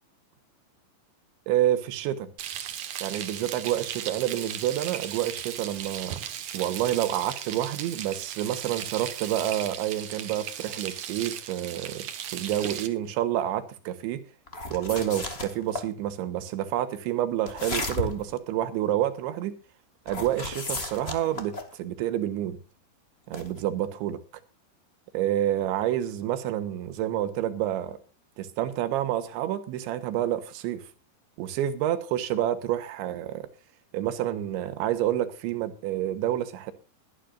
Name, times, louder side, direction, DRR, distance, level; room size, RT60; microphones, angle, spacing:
voice 1, 1.5-2.3 3.0-6.2 6.5-12.1 12.3-14.2 14.7-19.6 20.1-22.6 23.3-24.2 25.1-28.0 28.4-30.9 31.4-33.5 33.9-36.7, right 12 dB, 90° right, 3.6 m, -28 dB
Frying (food), 2.4-12.9, right 10 dB, 60° right, 2.1 m, -37 dB
sound 1, 14.5-15.9 17.4-18.3 20.1-21.7 23.3-23.6, left 2 dB, 75° left, 0.5 m, -34 dB
22.0 x 11.0 x 2.5 m
omnidirectional pair, 5.2 m